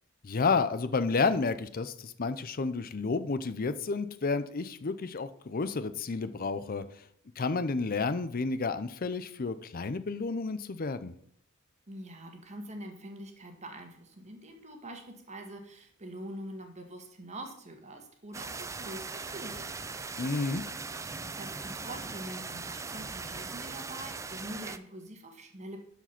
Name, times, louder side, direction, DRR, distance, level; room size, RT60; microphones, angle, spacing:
voice 1, 0.2-6.8 7.4-11.2 20.2-20.6, left 4 dB, 40° left, 13 dB, 0.5 m, -31 dB
voice 2, 11.9-19.7 21.4-25.8, right 1 dB, 30° right, 4 dB, 1.7 m, -44 dB
sound 1, 18.3-24.8, right 4 dB, 15° right, 0.4 m, -39 dB
12.0 x 5.0 x 5.8 m, 0.68 s
head